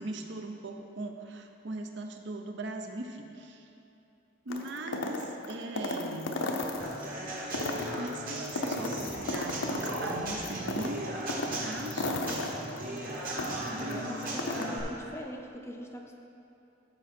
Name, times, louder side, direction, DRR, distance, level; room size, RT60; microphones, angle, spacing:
voice 1, 0.0-3.7 4.4-6.4 7.9-12.5 13.7-14.5, right 2 dB, 65° right, 4 dB, 0.7 m, -40 dB
sound 1, 4.5-7.1 7.4-10.1 10.4-13.9 14.2-14.7, left 2 dB, 85° left, 0.8 m, -34 dB
Human voice / Acoustic guitar / Drum, 6.8-14.8, right 1 dB, 50° right, 1.6 m, -38 dB
sound 2, 9.0-10.9 11.3-11.4 12.2-12.3 12.6-12.7, right 1 dB, 85° right, 1.1 m, -38 dB
voice 2, 13.4-16.2, equal, 15° left, 2 dB, 0.5 m, -42 dB
13.0 x 5.1 x 4.4 m, 2.8 s
head